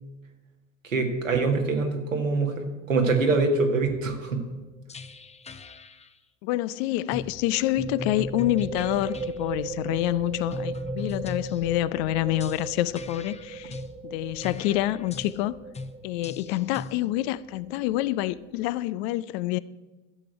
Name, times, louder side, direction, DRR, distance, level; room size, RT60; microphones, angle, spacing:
voice 1, 0.8-2.5 2.9-4.4, right 3 dB, 85° right, 1.9 m, -24 dB
sound 1, 3.7-4.1 4.9-6.1 7.1-7.4 7.8-9.4 10.5-11.8 12.4-14.0 14.4-15.4 15.7-16.0 16.2-17.0, left 3 dB, 15° left, 0.8 m, -39 dB
sound 2, 4.2-4.5 4.8-4.9 7.4-18.7, right 4 dB, 15° right, 1.0 m, -39 dB
voice 2, 6.4-15.5 16.0-19.6, left 15 dB, 55° left, 0.6 m, -27 dB
12.5 x 7.7 x 8.5 m
figure-of-eight pair, 70°, 38 cm